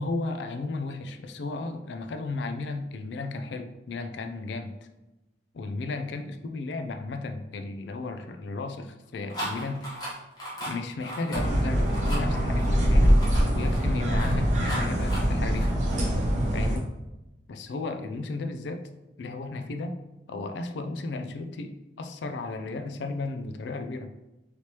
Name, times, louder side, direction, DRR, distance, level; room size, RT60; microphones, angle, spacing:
voice 1, 0.0-4.7 5.5-9.9 10.6-13.2 13.5-15.7 16.5-16.9 17.5-18.8 19.2-20.0 20.3-24.1, left 3 dB, 70° left, 7 dB, 0.4 m, -34 dB
sound 1, 9.3-16.0, right 1 dB, 20° left, 1.0 m, -37 dB
sound 2, 11.3-16.8, equal, 40° right, 0.7 m, -23 dB
3.2 x 3.0 x 2.9 m, 0.98 s
head